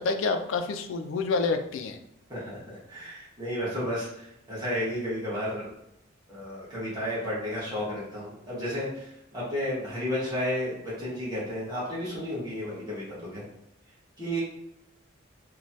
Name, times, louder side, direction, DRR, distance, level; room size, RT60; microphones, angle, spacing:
voice 1, 0.0-2.0, left 4 dB, 75° left, 7 dB, 0.3 m, -28 dB
voice 2, 2.3-5.7 6.3-13.4 14.2-14.4, equal, 20° right, -9 dB, 1.2 m, -32 dB
3.1 x 2.2 x 2.6 m, 0.81 s
head